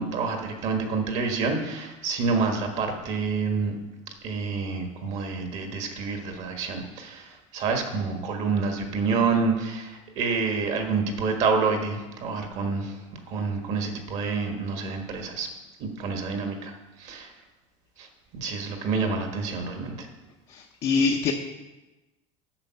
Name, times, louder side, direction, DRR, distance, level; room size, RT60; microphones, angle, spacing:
voice 1, 0.0-3.7 4.2-13.0 13.3-15.5 15.8-16.7 17.0-17.3 18.0-18.1 18.3-20.1, right 4 dB, 45° right, 4 dB, 1.5 m, -28 dB
voice 2, 20.5-21.3, left 5 dB, 35° left, 1 dB, 0.7 m, -24 dB
8.8 x 6.9 x 5.8 m, 1.1 s
cardioid pair, 160°, 16 cm